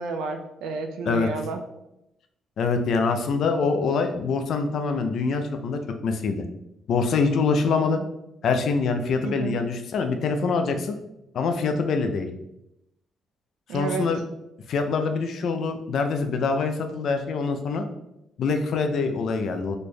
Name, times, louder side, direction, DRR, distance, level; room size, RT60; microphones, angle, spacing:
voice 1, 0.0-1.6 7.7-8.1 9.2-9.6 13.7-14.1, right 4 dB, 90° right, 5 dB, 0.4 m, -31 dB
voice 2, 2.6-6.4 6.9-8.0 8.4-11.0 11.3-12.3 13.7-14.2 14.7-17.8 18.4-19.8, left 4 dB, 65° left, 6 dB, 0.4 m, -24 dB
4.2 x 3.2 x 2.2 m, 0.86 s
cardioid pair, 90°, 0 cm